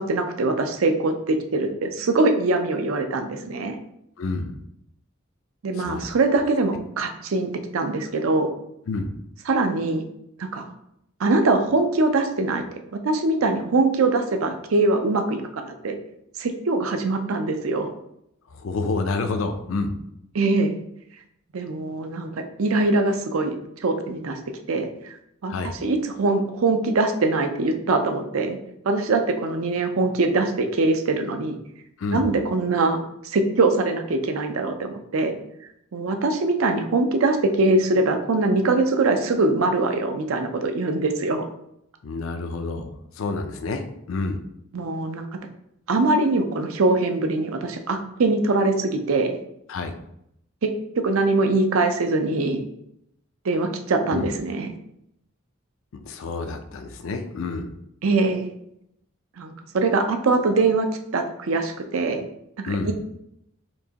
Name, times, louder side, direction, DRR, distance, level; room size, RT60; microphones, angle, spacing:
voice 1, 0.0-3.8 5.6-8.5 9.5-10.0 10.4-10.7 11.2-12.6 12.9-16.0 16.4-17.9 20.3-20.8 21.5-24.4 24.7-25.2 25.4-28.6 28.8-31.6 32.1-33.0 33.2-35.4 35.9-41.5 44.7-45.3 45.9-49.4 50.6-52.6 53.4-54.7 58.0-58.5 59.4-60.9 61.1-62.2 62.6-62.9, right 3 dB, 85° right, 6 dB, 0.5 m, -22 dB
voice 2, 4.2-4.5 5.7-6.1 8.9-9.1 18.5-19.9 25.5-25.8 32.0-32.3 42.0-42.9 43.1-44.4 49.7-49.9 54.1-54.3 56.0-57.7 62.7-62.9, left 3 dB, 70° left, 7 dB, 0.4 m, -28 dB
4.5 x 3.0 x 2.8 m, 0.78 s
head